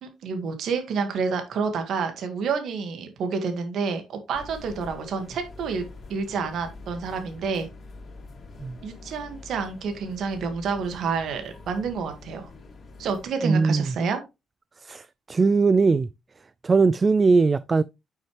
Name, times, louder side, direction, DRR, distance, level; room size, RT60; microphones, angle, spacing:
voice 1, 0.0-7.7 8.8-12.5 13.0-14.2, right 5 dB, 70° right, 1.9 m, -29 dB
sound 1, 4.3-13.3, left 3 dB, 45° left, 2.6 m, -45 dB
voice 2, 13.4-13.9 14.8-16.1 16.6-17.8, right 4 dB, 30° right, 0.3 m, -20 dB
8.7 x 6.1 x 3.3 m
cardioid pair, 90°, 0 cm